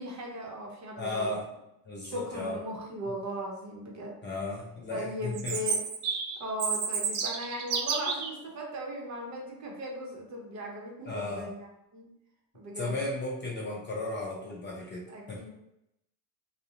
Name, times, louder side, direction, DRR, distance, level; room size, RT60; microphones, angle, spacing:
voice 1, 0.0-1.4 2.0-4.2 4.9-5.8 6.4-11.7 11.9-12.1 12.5-13.0 15.1-15.5, equal, 35° right, -1 dB, 0.8 m, -38 dB
voice 2, 1.0-1.4 1.9-2.6 4.2-5.6 11.0-11.5 12.8-15.0 15.3-15.5, left 2 dB, 25° left, -4 dB, 0.4 m, -35 dB
Chirp tweet, 5.3-8.3, right 6 dB, 65° right, 0.6 m, -30 dB
2.3 x 2.0 x 2.8 m, 0.84 s
supercardioid pair, 80°, 48 cm